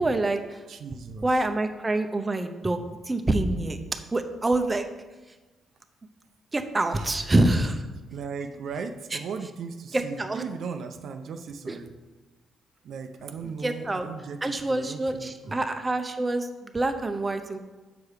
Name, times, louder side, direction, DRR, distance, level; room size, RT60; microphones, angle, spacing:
voice 1, 0.0-0.6 1.2-2.8 3.1-3.8 4.1-4.9 6.5-7.8 9.9-10.4 11.7-11.8 13.6-14.1 14.4-17.6, right 2 dB, 20° right, 6 dB, 0.7 m, -26 dB
voice 2, 0.7-1.4 7.0-7.1 8.1-12.0 12.8-15.6, right 5 dB, 65° right, 6 dB, 0.5 m, -37 dB
7.0 x 4.7 x 4.9 m, 1.2 s
cardioid pair, 90°, 0 cm